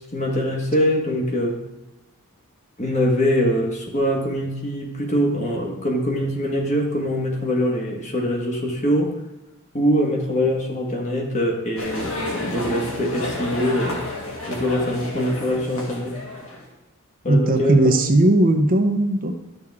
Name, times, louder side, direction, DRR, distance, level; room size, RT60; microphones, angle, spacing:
voice 1, 0.1-1.6 2.8-9.1 9.7-14.0 14.5-16.2 17.2-18.1, equal, 30° left, 0 dB, 1.6 m, -23 dB
sound 1, 11.8-16.6, left 2 dB, 70° left, 2.5 m, -31 dB
voice 2, 17.3-19.4, right 1 dB, 40° right, 4 dB, 0.8 m, -17 dB
12.5 x 6.6 x 3.6 m, 0.98 s
head